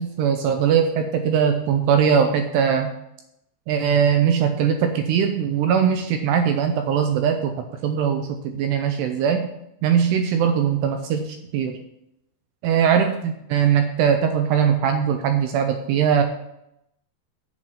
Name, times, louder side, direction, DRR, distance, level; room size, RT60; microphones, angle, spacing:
voice 1, 0.0-2.9 3.7-7.5 7.8-9.5 9.8-11.8 12.6-16.2, right 7 dB, 80° right, 6 dB, 2.5 m, -20 dB
7.8 x 7.6 x 5.6 m, 0.81 s
omnidirectional pair, 5.4 m